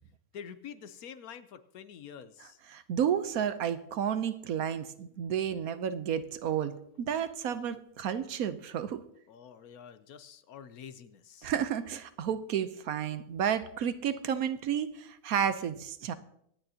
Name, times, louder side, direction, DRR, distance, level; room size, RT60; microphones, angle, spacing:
voice 1, 0.3-2.6 9.3-11.5, left 8 dB, 70° left, 12 dB, 1.2 m, -47 dB
voice 2, 2.7-9.0 11.4-16.1, right 8 dB, 70° right, 12 dB, 1.1 m, -31 dB
24.5 x 9.2 x 2.8 m, 0.72 s
omnidirectional pair, 1.7 m